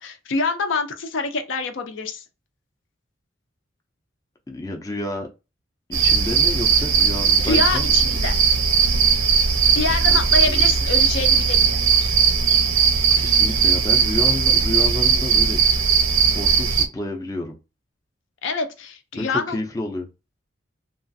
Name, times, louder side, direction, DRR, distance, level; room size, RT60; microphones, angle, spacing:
voice 1, 0.0-2.2 7.4-8.4 9.7-11.8 18.4-19.6, left 4 dB, 70° left, 0.5 m, -26 dB
voice 2, 4.5-5.3 5.9-8.2 10.1-10.2 10.5-10.7 13.2-15.6 16.3-17.6 19.2-20.1, left 2 dB, 15° left, 0.4 m, -30 dB
sound 1, 5.9-16.9, right 6 dB, 85° right, 0.6 m, -18 dB
2.9 x 2.4 x 2.5 m
head